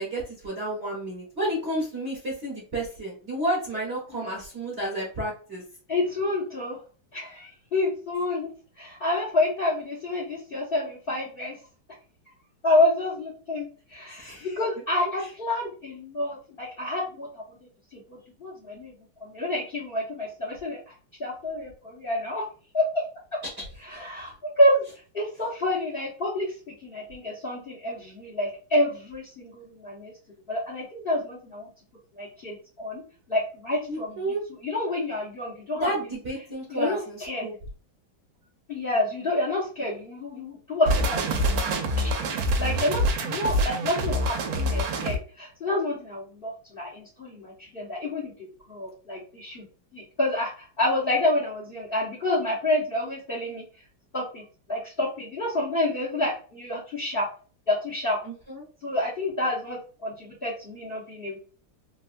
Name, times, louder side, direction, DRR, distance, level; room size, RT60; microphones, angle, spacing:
voice 1, 0.0-5.6 14.1-14.5 33.9-34.4 35.8-37.5 58.2-58.6, right 1 dB, 40° right, -6 dB, 1.2 m, -31 dB
voice 2, 5.9-6.8 7.1-8.5 8.8-11.6 12.6-17.4 17.9-18.9 19.2-20.9 21.2-22.4 22.7-22.8 23.8-24.8 25.1-26.5 26.8-30.1 30.5-31.7 32.2-33.0 33.3-34.3 34.6-35.9 36.7-37.5 38.7-41.7 42.0-48.3 48.7-49.6 49.9-53.6 54.1-54.4 54.7-57.3 57.7-58.2 58.8-61.4, left 1 dB, 80° left, -3 dB, 0.5 m, -28 dB
sound 1, 40.9-45.2, equal, 85° right, 1.5 m, -25 dB
3.9 x 2.2 x 2.4 m, 0.38 s
omnidirectional pair, 2.3 m